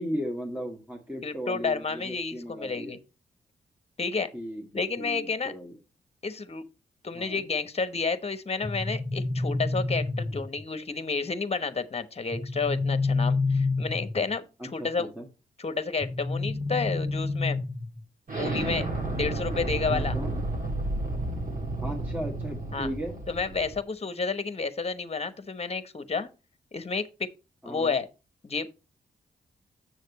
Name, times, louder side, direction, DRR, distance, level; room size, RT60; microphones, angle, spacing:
voice 1, 0.0-3.0 4.3-5.8 7.1-7.4 14.6-15.3 19.9-20.4 21.8-23.1 27.6-28.0, equal, 10° right, 1.6 m, -36 dB
voice 2, 1.2-3.0 4.0-4.3 4.7-5.5 6.2-6.6 7.0-14.4 14.7-15.1 15.6-17.6 18.3-18.9 19.1-20.1 22.7-22.9 23.3-26.3 26.7-27.3 27.6-28.1 28.4-28.7, left 4 dB, 35° left, 1.0 m, -30 dB
sound 1, 8.6-10.6 12.3-14.4 16.0-18.0, left 3 dB, 10° left, 1.3 m, -28 dB
Explosion, 18.3-23.8, right 2 dB, 50° right, 2.4 m, -31 dB
7.4 x 6.5 x 4.1 m
supercardioid pair, 40°, 18 cm